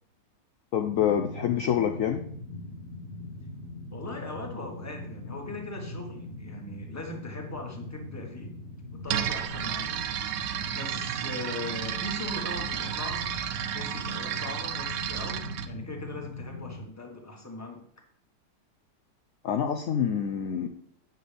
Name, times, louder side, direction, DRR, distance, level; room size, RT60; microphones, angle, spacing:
voice 1, 0.7-2.2 19.4-20.7, left 9 dB, 75° left, 5 dB, 0.7 m, -26 dB
sound 1, 0.8-16.9, left 2 dB, 45° left, 1.0 m, -41 dB
voice 2, 3.9-8.6 8.9-10.4 10.7-17.8, left 2 dB, 10° left, 1 dB, 1.1 m, -40 dB
sound 2, 9.1-15.7, right 10 dB, 75° right, 1.2 m, -32 dB
9.2 x 6.8 x 3.4 m, 0.66 s
omnidirectional pair, 2.0 m